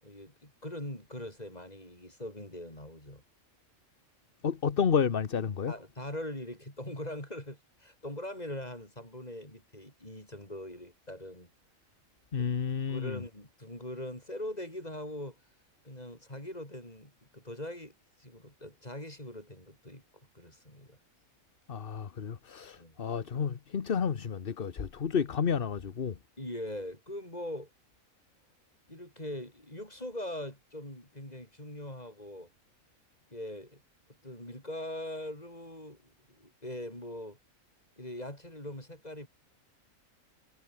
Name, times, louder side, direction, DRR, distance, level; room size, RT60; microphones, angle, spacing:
voice 1, 0.0-3.2 5.7-11.5 12.4-12.5 12.9-15.4 15.8-17.9 18.2-20.0 20.3-21.0 22.8-23.0 26.4-27.7 28.9-32.5 33.3-33.8 34.2-36.1 36.4-37.4 38.0-39.3, left 1 dB, 30° left, 7.3 m, -41 dB
voice 2, 4.4-5.7 12.3-13.2 21.7-26.2, left 6 dB, 45° left, 1.2 m, -31 dB
omnidirectional pair, 1.4 m